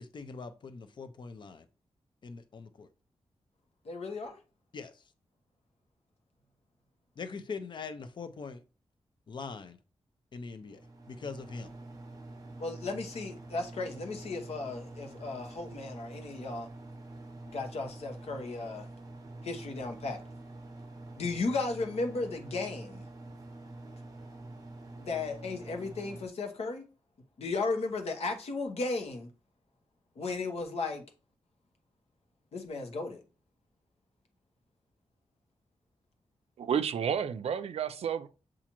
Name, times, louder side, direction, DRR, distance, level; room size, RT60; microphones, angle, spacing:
voice 1, 0.0-1.7 2.2-2.9 4.7-5.0 7.2-8.6 9.3-9.8 10.3-11.7, left 4 dB, 45° left, 0.5 m, -42 dB
voice 2, 3.8-4.4 12.6-16.7 17.5-18.9 19.4-20.2 21.2-23.1 25.0-26.8 27.4-29.3 30.2-31.0 32.5-33.2, left 3 dB, 70° left, 0.9 m, -35 dB
sound 1, 10.6-26.3, right 2 dB, 35° right, 0.7 m, -47 dB
voice 3, 36.6-38.3, right 8 dB, 70° right, 0.4 m, -31 dB
7.1 x 2.5 x 2.9 m
wide cardioid pair, 170°, 11 cm